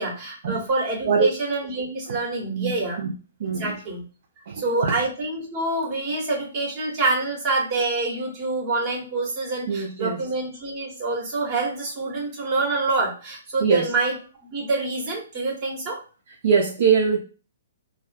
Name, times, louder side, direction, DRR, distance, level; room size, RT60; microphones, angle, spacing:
voice 1, 0.0-3.0 3.4-4.0 4.6-14.1 14.4-16.0, right 3 dB, 40° right, -2 dB, 1.1 m, -26 dB
voice 2, 2.5-3.1 3.4-3.8 4.5-4.9 9.7-10.2 13.6-13.9 16.4-17.2, right 6 dB, 55° right, 1 dB, 0.4 m, -22 dB
2.2 x 2.2 x 2.5 m, 0.35 s
figure-of-eight pair, 130°, 0 cm